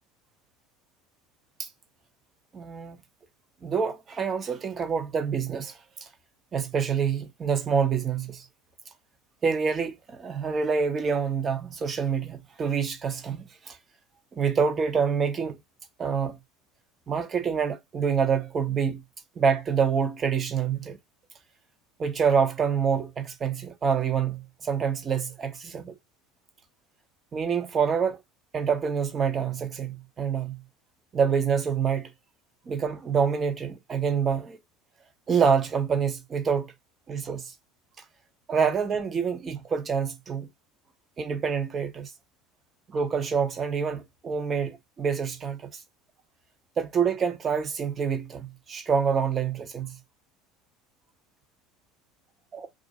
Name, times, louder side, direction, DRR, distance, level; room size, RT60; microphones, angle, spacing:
voice 1, 2.5-3.0 3.6-6.1 6.5-8.5 9.4-13.8 14.3-15.6 16.0-16.4 17.1-19.0 19.4-21.0 22.0-25.9 27.3-28.2 28.5-30.6 31.1-32.1 32.7-34.6 35.3-36.7 37.1-37.5 38.5-40.5 41.2-42.1 42.9-45.8 46.8-50.0 52.5-52.7, right 6 dB, 30° right, 0.8 m, -27 dB
2.6 x 2.5 x 3.9 m
figure-of-eight pair, 70°, 0 cm